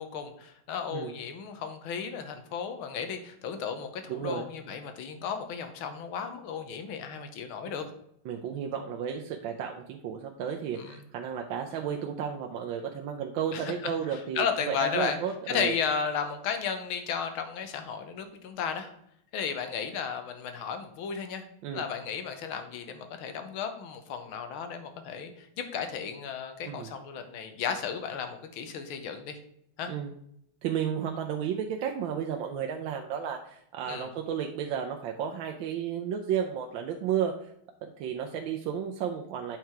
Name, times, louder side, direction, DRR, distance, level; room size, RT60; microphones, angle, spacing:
voice 1, 0.0-7.8 10.7-11.0 13.5-15.2 15.5-18.9 19.3-21.4 21.7-29.4 29.8-29.9 33.9-34.1, left 6 dB, 85° left, 8 dB, 1.8 m, -34 dB
voice 2, 4.1-4.4 8.2-15.8 21.6-21.8 26.6-26.9 29.9-30.1 30.6-37.5 38.0-39.6, right 8 dB, 75° right, 3 dB, 1.4 m, -33 dB
8.3 x 4.7 x 4.5 m, 0.72 s
omnidirectional pair, 2.2 m